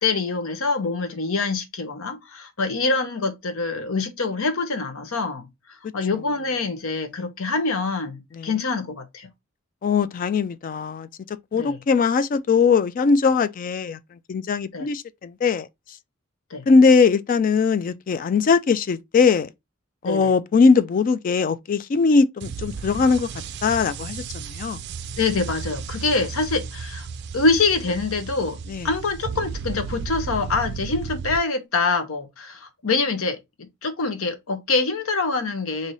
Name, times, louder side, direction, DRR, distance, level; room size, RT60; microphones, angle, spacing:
voice 1, 0.0-5.5 5.9-9.3 11.5-11.8 14.7-14.9 16.5-16.6 20.0-20.3 25.2-27.1 27.3-28.6 28.8-35.9, left 3 dB, 80° left, 0.8 m, -25 dB
voice 2, 9.8-14.0 14.3-15.7 16.7-19.5 20.0-23.3 23.6-24.8 28.7-28.9, left 5 dB, 40° left, 0.3 m, -20 dB
sound 1, 22.4-31.4, right 5 dB, 55° right, 0.4 m, -34 dB
3.2 x 2.7 x 3.9 m
head